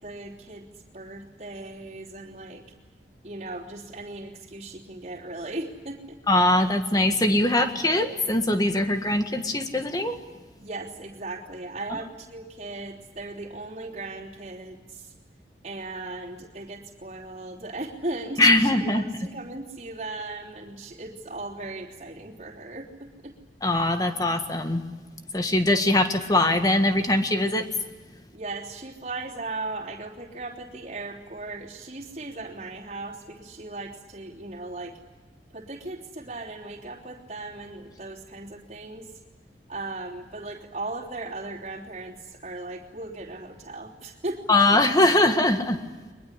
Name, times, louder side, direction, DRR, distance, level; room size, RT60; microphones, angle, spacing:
voice 1, 0.0-2.6 3.2-6.2 10.6-15.1 15.6-23.3 28.3-35.0 35.5-39.2 39.7-44.5, right 2 dB, 40° right, -6 dB, 3.2 m, -37 dB
voice 2, 6.3-10.2 18.4-19.0 23.6-24.8 25.3-27.7 44.5-45.8, left 1 dB, 20° left, 7 dB, 1.7 m, -21 dB
22.5 x 21.5 x 10.0 m, 1.3 s
head